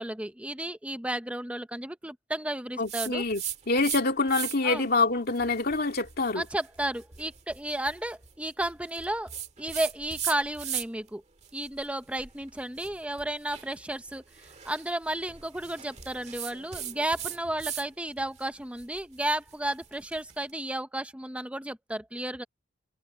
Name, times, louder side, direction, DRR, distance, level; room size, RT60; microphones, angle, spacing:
voice 1, 0.0-3.2 4.6-4.9 6.4-9.3 9.6-11.2 11.5-14.2 14.6-22.4, right 1 dB, 5° right, 0.8 m, -33 dB
voice 2, 2.8-6.4, left 3 dB, 45° left, 2.4 m, -26 dB
sound 1, 2.9-4.0 4.3-4.8 5.3-11.1 11.4-17.9 18.2-20.4, right 9 dB, 30° right, 1.8 m, -39 dB
head